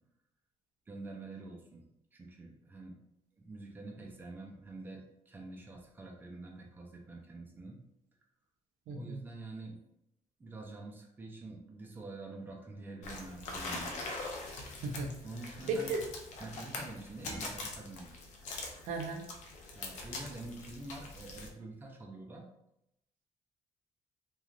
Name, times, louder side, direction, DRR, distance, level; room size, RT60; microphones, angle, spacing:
voice 1, 0.9-1.9 2.1-2.9 3.4-7.8 8.9-9.8 10.4-13.9 15.2-16.0 16.4-18.1 19.7-22.5, right 2 dB, 15° right, 0 dB, 0.4 m, -46 dB
voice 2, 8.9-9.2 14.8-15.1 15.7-16.0 18.9-19.2, right 3 dB, 90° right, 3 dB, 0.5 m, -35 dB
sound 1, 13.0-21.5, left 2 dB, 75° left, 0.5 m, -43 dB
3.2 x 2.3 x 2.4 m, 0.81 s
cardioid pair, 160°, 12 cm